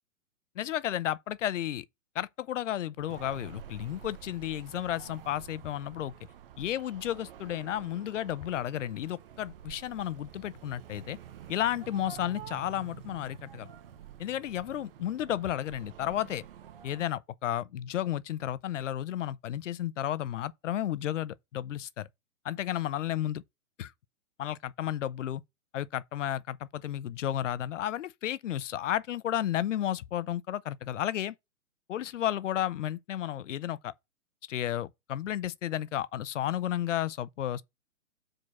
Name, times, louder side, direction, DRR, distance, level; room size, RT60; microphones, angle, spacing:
voice 1, 0.6-1.8 2.2-6.1 6.6-11.2 11.5-13.7 14.2-16.4 16.8-22.1 22.4-23.4 23.8-23.9 24.4-25.4 25.7-31.4 31.9-33.9 34.5-37.6, left 11 dB, 55° left, 0.6 m, -32 dB
sound 1, 3.1-17.1, right 9 dB, 40° right, 0.8 m, -49 dB
4.9 x 4.4 x 5.9 m
hypercardioid pair, 145°, 44 cm